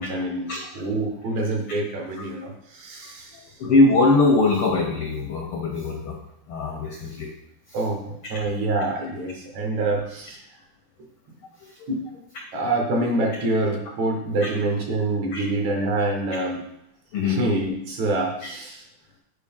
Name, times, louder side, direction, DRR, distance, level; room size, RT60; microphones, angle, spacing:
voice 1, 0.0-0.5 0.7-3.4 7.7-10.4 11.9-12.0 12.5-16.6 17.3-18.8, right 2 dB, 65° right, 0 dB, 2.6 m, -26 dB
voice 2, 3.6-6.2 6.5-7.3 14.4-14.5 15.3-15.4 17.1-17.4, left 2 dB, 80° left, 0 dB, 1.2 m, -21 dB
9.4 x 4.8 x 3.6 m, 0.79 s
omnidirectional pair, 3.6 m